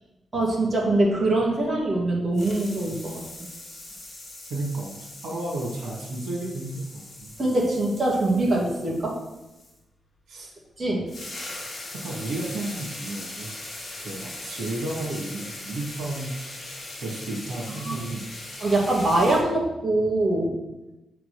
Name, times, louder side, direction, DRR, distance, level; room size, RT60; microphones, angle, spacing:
voice 1, 0.3-3.2 7.4-9.2 10.8-11.1 17.8-18.0 18.6-20.6, right 2 dB, 30° right, -4 dB, 2.4 m, -23 dB
sound 1, 0.8-2.1 2.3-9.8 10.7-10.8 11.1-19.4, left 2 dB, 40° left, 2.6 m, -40 dB
voice 2, 4.5-5.0 5.2-7.3 10.3-10.5 11.9-13.5 14.0-16.4 17.0-18.3, right 2 dB, 80° right, -3 dB, 2.4 m, -32 dB
8.3 x 4.7 x 6.8 m, 0.96 s
wide cardioid pair, 150°, 0 cm